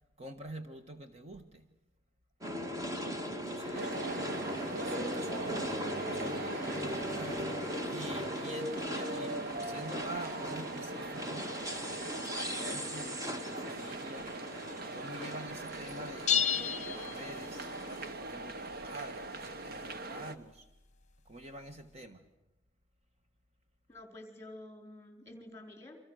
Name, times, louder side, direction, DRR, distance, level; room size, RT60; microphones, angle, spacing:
voice 1, 0.2-1.7 3.2-4.1 4.7-7.5 7.8-11.5 12.3-14.3 14.6-20.7 21.2-22.2, right 1 dB, 35° right, 6 dB, 1.6 m, -47 dB
sound 1, 2.4-18.1, equal, 20° right, 2.1 m, -39 dB
voice 2, 3.7-4.3 23.9-26.0, left 1 dB, 15° left, 5 dB, 4.4 m, -50 dB
sound 2, 3.7-20.4, right 2 dB, 50° right, 1.4 m, -41 dB
sound 3, 16.3-17.9, left 8 dB, 40° left, 1.1 m, -31 dB
29.0 x 25.5 x 6.5 m, 0.92 s
head